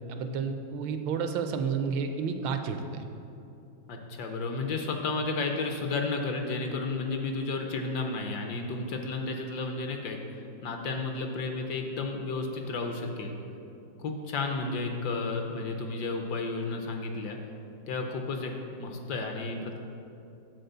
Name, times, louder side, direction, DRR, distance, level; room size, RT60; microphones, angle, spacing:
voice 1, 0.1-3.0, right 5 dB, 80° right, 7 dB, 1.3 m, -31 dB
voice 2, 3.9-10.2 10.6-13.4 14.0-17.4 17.9-19.8, left 3 dB, 70° left, 3 dB, 1.1 m, -32 dB
7.8 x 4.3 x 6.7 m, 2.7 s
omnidirectional pair, 2.1 m